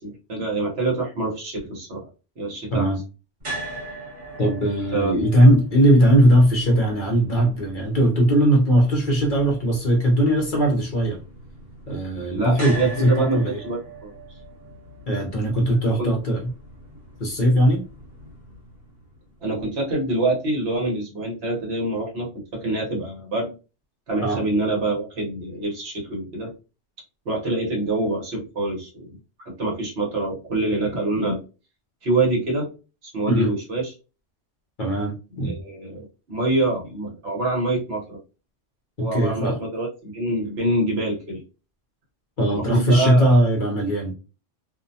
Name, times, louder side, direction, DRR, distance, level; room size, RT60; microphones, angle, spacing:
voice 1, 0.0-2.1 2.4-2.9 4.9-5.2 12.3-14.1 15.7-16.1 19.4-23.5 24.1-26.5 27.2-29.1 29.4-31.4 32.0-32.7 33.0-33.9 35.4-38.2 39.0-41.4 42.5-43.2, right 2 dB, 60° right, -3 dB, 1.2 m, -26 dB
sound 1, 3.4-19.5, right 1 dB, 40° right, 1.5 m, -40 dB
voice 2, 4.4-11.2 11.9-13.6 15.1-16.5 17.2-17.8 24.2-24.4 33.3-33.5 34.8-35.6 39.0-39.6 42.4-44.1, right 1 dB, 50° left, 0 dB, 0.8 m, -19 dB
2.6 x 2.1 x 2.6 m, 0.32 s
omnidirectional pair, 1.2 m